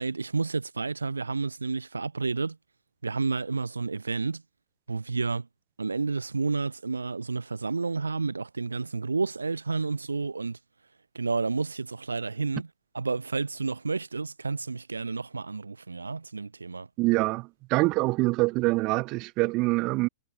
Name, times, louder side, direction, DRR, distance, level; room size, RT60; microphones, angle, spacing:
voice 1, 0.0-2.6 3.0-4.4 4.9-5.5 5.8-10.6 11.1-12.7 12.9-16.9, right 4 dB, 85° right, 3.9 m, -30 dB
voice 2, 17.0-20.1, right 23 dB, 40° right, 2.0 m, -25 dB
figure-of-eight pair, 105°, 0 cm